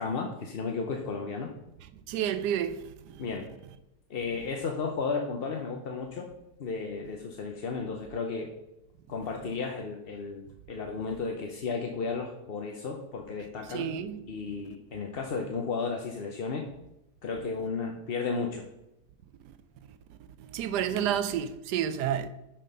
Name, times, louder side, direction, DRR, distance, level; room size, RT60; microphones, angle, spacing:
voice 1, 0.0-1.5 3.2-3.5 4.1-6.3 6.6-8.5 9.1-13.9 14.3-16.7 17.2-18.6 20.9-21.1, left 4 dB, 50° left, 0.7 m, -33 dB
voice 2, 2.1-3.2 13.7-14.2 20.4-22.3, right 9 dB, 85° right, 1.2 m, -30 dB
6.4 x 5.8 x 5.3 m
omnidirectional pair, 1.7 m